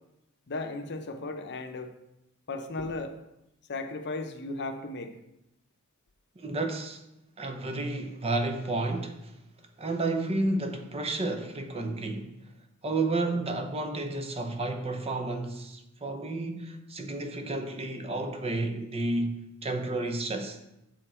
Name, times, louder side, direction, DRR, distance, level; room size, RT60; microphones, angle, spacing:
voice 1, 0.5-1.9 2.5-3.2 3.7-5.1, left 2 dB, 50° left, 0.8 m, -35 dB
voice 2, 6.4-7.0 7.4-9.3 9.8-12.3 12.8-20.6, right 2 dB, 30° right, 0.7 m, -31 dB
7.7 x 6.8 x 4.4 m
head